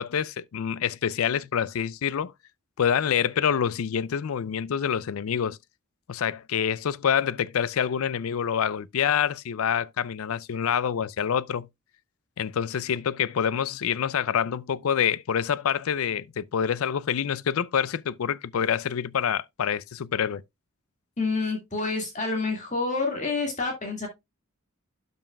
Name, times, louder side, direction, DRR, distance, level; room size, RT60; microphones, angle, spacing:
voice 1, 0.0-2.3 2.8-5.6 6.1-11.7 12.4-20.4, left 8 dB, 80° left, 0.4 m, -26 dB
voice 2, 21.2-24.1, left 3 dB, 35° left, 2.0 m, -28 dB
12.0 x 5.4 x 2.3 m
head